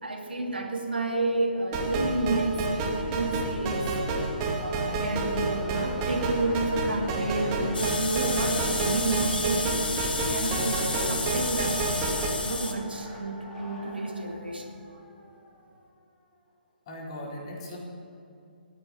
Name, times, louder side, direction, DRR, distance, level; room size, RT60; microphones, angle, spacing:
voice 1, 0.0-3.9 4.5-9.8 10.2-10.8 11.1-14.7, right 2 dB, 75° right, 2 dB, 2.5 m, -30 dB
sound 1, 1.7-12.3, right 3 dB, 25° right, 2.3 m, -30 dB
sound 2, 2.5-2.6 3.0-16.0, left 1 dB, 10° left, 5.2 m, -45 dB
sound 3, 7.7-12.7, left 3 dB, 65° left, 2.1 m, -32 dB
voice 2, 16.9-17.8, left 1 dB, 35° left, -3 dB, 4.5 m, -38 dB
14.5 x 10.5 x 9.2 m, 2.6 s
figure-of-eight pair, 135°, 5 cm